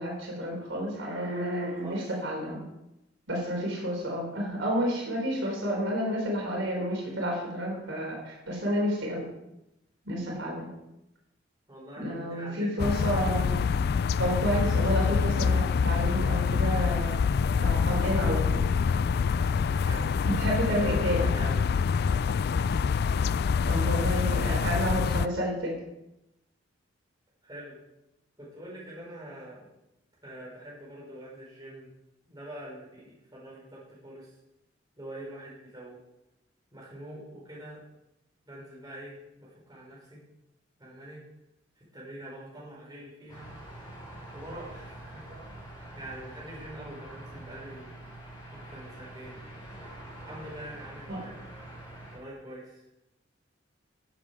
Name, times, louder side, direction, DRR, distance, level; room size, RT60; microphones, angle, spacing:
voice 1, 0.0-2.6 3.3-9.3 10.1-10.7 12.0-13.6 14.2-17.2 17.5-19.0 20.4-21.3 23.7-25.7 51.1-51.2, equal, 80° right, -2 dB, 4.0 m, -30 dB
voice 2, 11.7-13.2 19.8-21.7 23.6-25.1 27.4-27.8 28.4-29.7 30.2-31.9 32.3-34.4 35.0-36.0 36.7-37.8 38.5-40.2 40.8-41.2 41.8-43.5 44.3-48.0 48.5-49.4 50.2-51.5 52.1-52.8, right 1 dB, 20° right, -5 dB, 5.3 m, -45 dB
sound 1, 12.8-25.3, left 6 dB, 55° left, 0.3 m, -26 dB
sound 2, 43.3-52.2, right 1 dB, 25° left, 4.0 m, -45 dB
15.0 x 7.7 x 4.9 m, 0.91 s
head